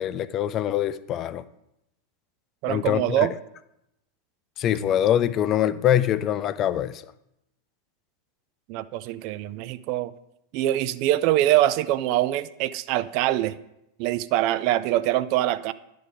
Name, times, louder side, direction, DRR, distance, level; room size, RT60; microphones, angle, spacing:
voice 1, 0.0-1.4 2.7-3.3 4.6-7.0, left 11 dB, 30° left, 0.4 m, -24 dB
voice 2, 2.6-3.3 8.7-10.1 10.5-13.6 14.0-15.7, right 14 dB, 45° right, 0.3 m, -24 dB
11.0 x 3.9 x 4.9 m
figure-of-eight pair, 90°, 0 cm